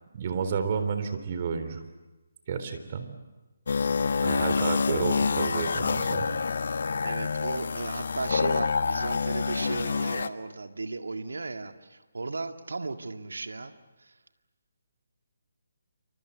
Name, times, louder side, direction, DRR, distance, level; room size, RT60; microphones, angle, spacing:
voice 1, 0.1-1.8 2.5-3.0 4.2-6.3, right 6 dB, 40° right, 9 dB, 3.7 m, -30 dB
sound 1, 3.7-10.3, left 5 dB, 65° left, 1.2 m, -27 dB
voice 2, 7.0-13.7 14.0-14.2, right 3 dB, 80° right, 7 dB, 1.9 m, -35 dB
28.0 x 25.0 x 8.2 m, 1.1 s
figure-of-eight pair, 150°, 0 cm